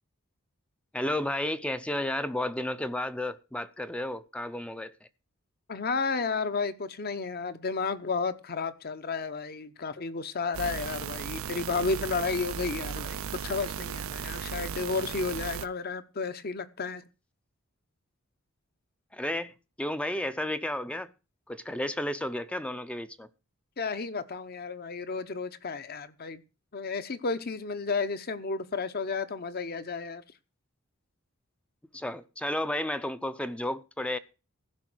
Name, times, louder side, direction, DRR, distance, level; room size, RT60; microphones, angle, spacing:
voice 1, 0.9-4.9 19.1-19.5 19.8-21.1 21.5-23.3 31.9-34.2, left 1 dB, 5° left, 0.5 m, -32 dB
voice 2, 5.7-17.0 23.8-26.4 26.7-30.2, left 4 dB, 45° left, 0.9 m, -32 dB
sound 1, 10.5-15.7, right 7 dB, 75° right, 0.5 m, -36 dB
15.0 x 5.7 x 6.1 m
head